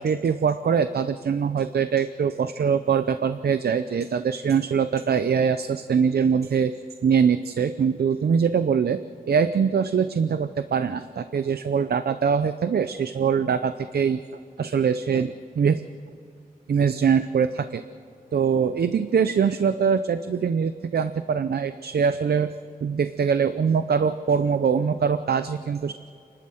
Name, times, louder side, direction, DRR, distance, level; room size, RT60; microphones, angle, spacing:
voice 1, 0.0-6.7 7.0-9.0 9.3-14.2 14.6-15.8 16.7-17.8 18.3-22.5 22.8-25.9, right 6 dB, 80° right, 11 dB, 0.6 m, -23 dB
29.0 x 12.0 x 7.7 m, 2.5 s
wide cardioid pair, 100°, 16 cm